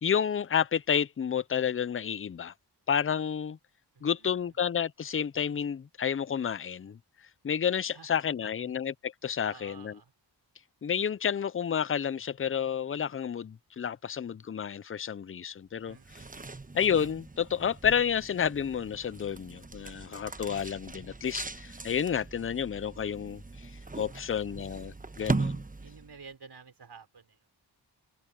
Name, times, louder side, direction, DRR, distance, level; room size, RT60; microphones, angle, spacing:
voice 1, 0.0-2.5 2.9-3.6 4.0-7.0 7.4-9.9 10.8-16.0 16.7-23.7 24.0-25.6, left 8 dB, 30° left, 0.6 m, -30 dB
voice 2, 3.9-4.5 7.9-8.8 9.4-10.1 15.9-16.6 23.9-24.5 25.5-27.5, right 5 dB, 65° right, 5.3 m, -53 dB
sound 1, 15.9-26.2, right 3 dB, 20° right, 1.1 m, -39 dB
open air
cardioid pair, 65°, 43 cm